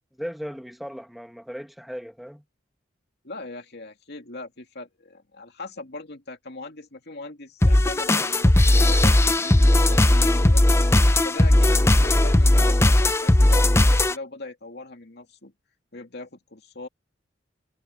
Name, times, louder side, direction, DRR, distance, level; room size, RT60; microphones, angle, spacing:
voice 1, 0.2-2.4, equal, ahead, 1.6 m, -37 dB
voice 2, 3.2-9.6 9.9-10.6 11.2-15.5 15.9-16.9, left 2 dB, 65° left, 2.6 m, -40 dB
sound 1, 7.6-14.1, left 1 dB, 15° left, 0.5 m, -17 dB
head